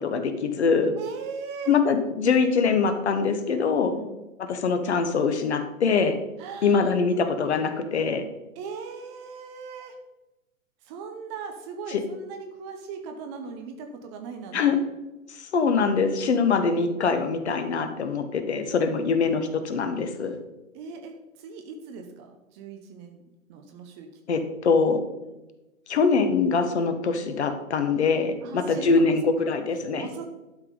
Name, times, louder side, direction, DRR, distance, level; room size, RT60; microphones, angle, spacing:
voice 1, 0.0-0.9 1.7-3.9 4.4-6.2 6.6-8.2 11.9-12.0 14.5-14.8 15.3-20.4 24.3-25.0 25.9-30.1, left 5 dB, 50° left, 8 dB, 1.4 m, -23 dB
voice 2, 1.0-1.8 3.9-4.2 6.4-6.9 8.6-10.0 10.8-14.8 20.7-23.2 23.5-24.5 25.2-25.4 28.4-29.2 30.0-30.3, right 5 dB, 20° right, 5 dB, 0.8 m, -39 dB
11.5 x 6.1 x 5.2 m, 1.0 s
figure-of-eight pair, 120°, 41 cm